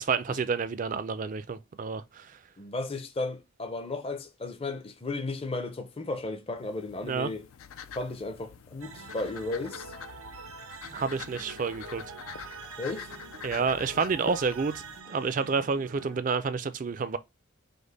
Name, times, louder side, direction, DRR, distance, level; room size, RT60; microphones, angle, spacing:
voice 1, 0.0-2.4 7.0-7.3 10.9-12.0 13.4-17.2, right 5 dB, 40° right, 0.3 m, -29 dB
voice 2, 2.6-7.4 7.9-9.9 12.8-13.1, left 2 dB, 25° left, 0.5 m, -34 dB
sound 1, 6.6-15.0, left 7 dB, 80° left, 0.4 m, -45 dB
sound 2, 8.8-16.2, right 5 dB, 90° right, 0.6 m, -45 dB
5.1 x 2.1 x 3.9 m
head